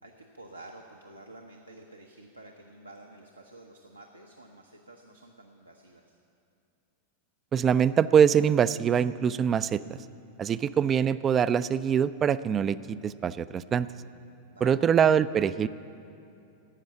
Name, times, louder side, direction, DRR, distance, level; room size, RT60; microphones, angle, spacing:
voice 1, 0.0-6.2 10.5-10.7 14.5-14.9, right 2 dB, 85° right, 2 dB, 0.9 m, -50 dB
voice 2, 7.5-10.0 10.4-13.9 14.6-15.7, right 8 dB, 25° right, 16 dB, 0.3 m, -24 dB
13.0 x 8.8 x 9.6 m, 2.7 s
figure-of-eight pair, 90°, 0 cm